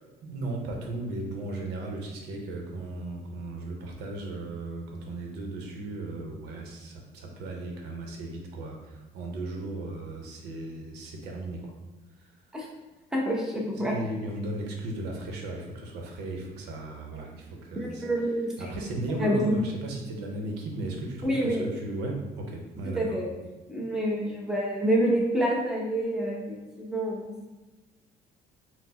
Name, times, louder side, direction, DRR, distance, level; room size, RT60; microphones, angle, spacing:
voice 1, 0.0-11.7 12.2-12.3 13.8-18.0 18.6-23.2, right 2 dB, 90° right, 1 dB, 0.8 m, -36 dB
voice 2, 13.1-13.9 17.8-18.5 19.2-19.5 21.2-21.6 22.9-23.3 23.7-27.3, right 1 dB, 5° right, -3 dB, 0.9 m, -27 dB
4.2 x 2.1 x 4.2 m, 1.1 s
cardioid pair, 110°, 17 cm